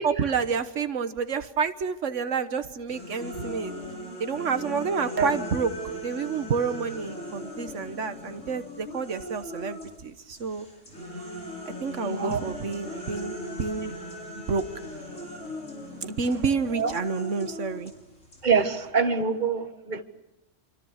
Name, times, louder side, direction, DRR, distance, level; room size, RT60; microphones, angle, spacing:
voice 1, 0.0-3.7 4.2-10.6 11.8-13.9 14.4-14.6 16.0-17.9, right 5 dB, 90° right, 10 dB, 1.6 m, -29 dB
sound 1, 2.9-10.0 10.3-18.9, equal, 90° left, 7.4 m, -39 dB
voice 2, 12.0-12.4 16.8-16.9 18.4-19.6 19.9-20.0, right 5 dB, 40° right, 8 dB, 1.7 m, -24 dB
28.0 x 25.5 x 6.5 m, 0.95 s
omnidirectional pair, 1.2 m